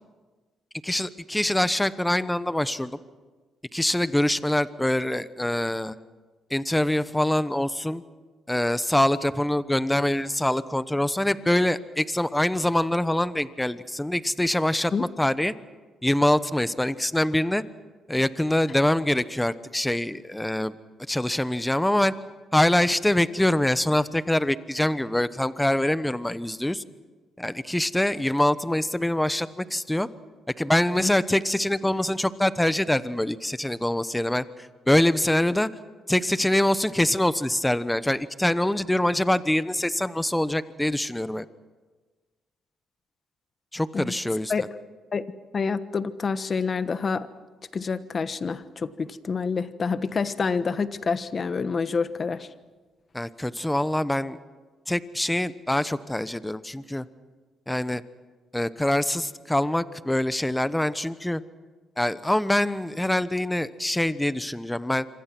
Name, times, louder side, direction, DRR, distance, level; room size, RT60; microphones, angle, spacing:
voice 1, 0.8-3.0 3.7-5.9 6.5-8.0 8.5-15.5 16.0-17.6 18.1-20.7 21.1-22.1 22.5-26.8 27.4-30.1 30.6-34.4 34.9-35.7 36.1-41.5 43.7-44.7 53.1-54.4 54.9-57.1 57.7-58.0 58.5-61.4 62.0-65.1, left 1 dB, 5° left, 14 dB, 1.0 m, -24 dB
voice 2, 45.5-47.3 47.7-52.5, left 5 dB, 40° left, 12 dB, 1.2 m, -27 dB
27.0 x 25.5 x 6.1 m, 1.3 s
cardioid pair, 90°, 0 cm